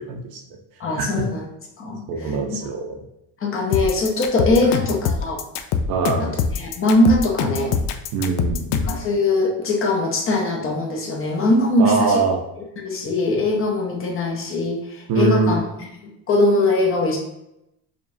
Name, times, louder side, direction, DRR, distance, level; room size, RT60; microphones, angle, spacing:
voice 1, 0.1-0.4 1.0-1.3 2.1-3.0 4.6-4.7 5.9-6.4 8.1-8.8 11.8-12.4 15.1-15.6, right 4 dB, 55° right, 3 dB, 0.7 m, -22 dB
voice 2, 0.8-1.5 1.8-2.4 3.4-5.4 6.2-7.8 8.8-12.2 12.8-17.2, left 2 dB, 30° left, 0 dB, 0.6 m, -21 dB
sound 1, 3.7-9.1, left 6 dB, 85° left, 0.5 m, -23 dB
5.1 x 2.4 x 2.6 m, 0.83 s
cardioid pair, 145°, 42 cm